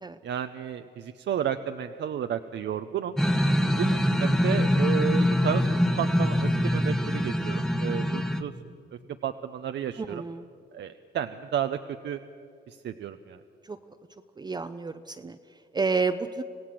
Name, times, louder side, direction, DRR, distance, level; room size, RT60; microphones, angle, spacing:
voice 1, 0.2-3.2 3.6-5.7 6.0-8.5 9.2-10.2 10.7-11.8 12.0-12.2 12.7-13.4, right 9 dB, 60° right, 8 dB, 0.8 m, -32 dB
sound 1, 3.2-8.4, equal, ahead, 1.1 m, -24 dB
voice 2, 10.0-10.5 13.6-13.8 14.4-15.4 15.7-16.4, right 4 dB, 20° right, 8 dB, 0.6 m, -30 dB
26.5 x 16.5 x 7.7 m, 2.5 s
cardioid pair, 90°, 20 cm